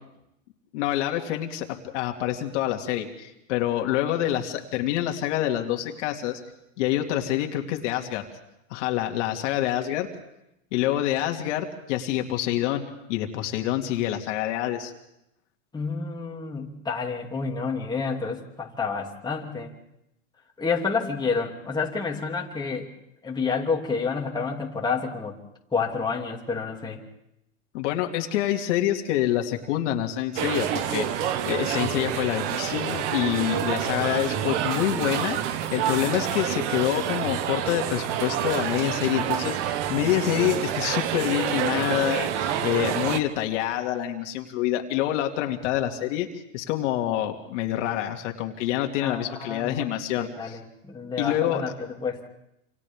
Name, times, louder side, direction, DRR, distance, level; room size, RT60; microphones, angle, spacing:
voice 1, 0.7-1.7 1.9-6.4 6.8-8.2 8.7-10.1 10.7-12.8 13.1-14.9 27.7-46.3 46.5-50.6 51.2-51.6, left 12 dB, 65° left, 3 dB, 2.5 m, -27 dB
voice 2, 15.7-19.7 20.6-22.9 23.2-25.3 25.7-27.0 49.0-49.8 50.2-51.7 52.0-52.3, left 5 dB, 10° left, -1 dB, 2.7 m, -29 dB
sound 1, 30.4-43.2, right 10 dB, 65° right, 1.6 m, -28 dB
28.0 x 27.5 x 3.6 m, 0.83 s
supercardioid pair, 130°, 39 cm